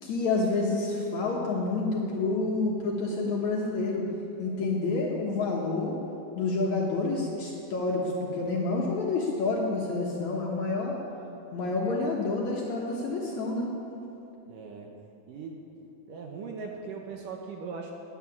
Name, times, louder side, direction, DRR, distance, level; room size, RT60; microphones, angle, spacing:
voice 1, 0.0-4.1 4.4-6.0 6.3-11.0 11.5-13.7, left 3 dB, 60° left, -2 dB, 2.1 m, -28 dB
voice 2, 14.5-14.9 15.3-15.6 16.1-17.9, right 5 dB, 70° right, 1 dB, 2.2 m, -39 dB
11.0 x 9.7 x 9.9 m, 2.8 s
omnidirectional pair, 4.7 m